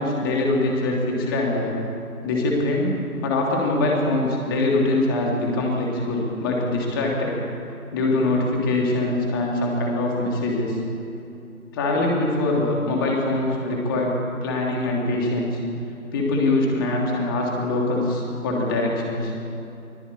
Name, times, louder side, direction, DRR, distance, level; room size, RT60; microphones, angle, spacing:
voice 1, 0.0-1.8 2.2-7.4 7.9-10.8 11.7-15.6 16.1-19.3, left 2 dB, 15° left, -1 dB, 3.2 m, -23 dB
23.5 x 21.5 x 8.6 m, 2.7 s
figure-of-eight pair, 160°, 44 cm